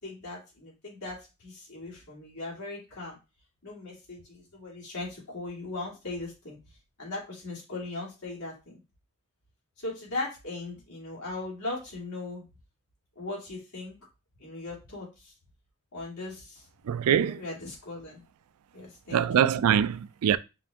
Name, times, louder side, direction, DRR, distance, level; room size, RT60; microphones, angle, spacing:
voice 1, 0.0-3.2 3.6-6.6 7.0-8.8 9.8-12.4 13.2-14.0 14.4-15.3 15.9-16.6 17.1-18.2 18.7-19.2, left 2 dB, 80° left, 2.6 m, -38 dB
voice 2, 16.9-17.4 19.1-20.4, right 8 dB, 75° right, 0.3 m, -23 dB
5.6 x 2.6 x 3.4 m
head